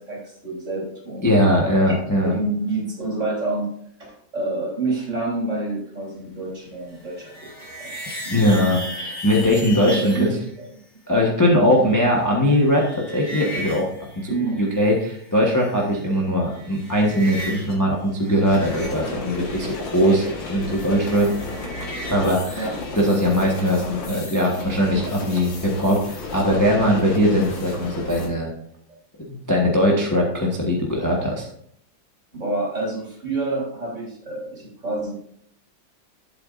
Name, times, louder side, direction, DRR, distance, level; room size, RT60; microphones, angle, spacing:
voice 1, 0.0-1.3 1.6-3.7 4.0-7.5 7.8-7.9 8.2-8.5 9.9-10.7 12.5-12.6 14.3-14.6 22.5-22.8 32.3-35.1, right 2 dB, 40° right, -4 dB, 3.8 m, -28 dB
voice 2, 1.2-2.3 8.3-10.3 11.1-12.8 13.1-13.9 14.1-21.3 22.1-22.7 22.9-26.0 26.3-28.5 29.3-31.5, equal, 10° left, -2 dB, 1.1 m, -20 dB
sound 1, 6.9-10.3 11.7-15.1 15.3-16.2 16.4-17.8 18.0-22.5, equal, 60° left, 3.5 m, -37 dB
sound 2, 18.4-28.3, left 3 dB, 80° left, 2.4 m, -33 dB
12.0 x 7.8 x 2.6 m, 0.68 s
omnidirectional pair, 2.0 m